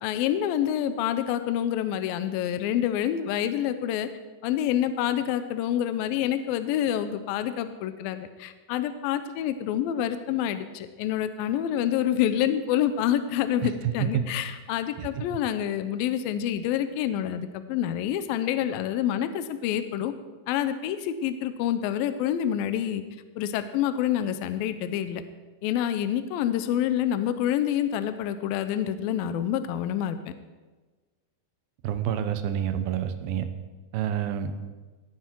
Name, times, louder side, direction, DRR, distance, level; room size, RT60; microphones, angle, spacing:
voice 1, 0.0-4.1 4.4-20.1 20.5-23.0 23.4-25.2 25.6-30.2, left 10 dB, 80° left, 10 dB, 2.3 m, -27 dB
voice 2, 31.8-33.5 33.9-34.5, right 10 dB, 75° right, 9 dB, 2.5 m, -28 dB
17.5 x 9.1 x 4.5 m, 1.3 s
omnidirectional pair, 4.5 m